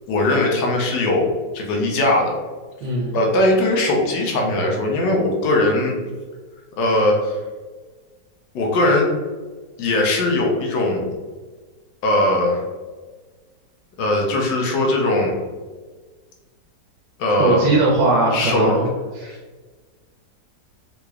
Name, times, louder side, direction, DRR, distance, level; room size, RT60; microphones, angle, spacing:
voice 1, 0.1-2.4 3.1-6.0 6.8-7.4 8.5-9.1 9.8-11.1 12.0-12.6 14.0-15.3 17.2-17.7 18.3-18.8 19.3-19.4, left 1 dB, 85° left, 0 dB, 1.4 m, -19 dB
voice 2, 2.8-3.2 17.4-18.8 19.1-19.3, right 2 dB, 85° right, -3 dB, 1.3 m, -19 dB
3.8 x 2.3 x 3.1 m, 1.3 s
omnidirectional pair, 1.9 m